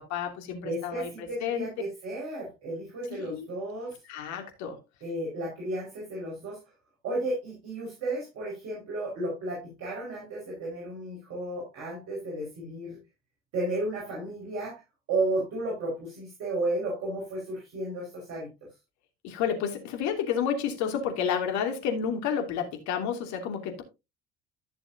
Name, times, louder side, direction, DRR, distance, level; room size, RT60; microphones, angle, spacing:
voice 1, 0.1-1.7 3.1-3.5 4.1-4.8 19.2-23.8, left 7 dB, 65° left, 2.9 m, -30 dB
voice 2, 0.6-4.0 5.0-6.6 7.0-13.0 13.5-14.8 15.1-18.5, right 2 dB, 55° right, 5.3 m, -33 dB
14.0 x 6.9 x 2.8 m
hypercardioid pair, 65°, 31 cm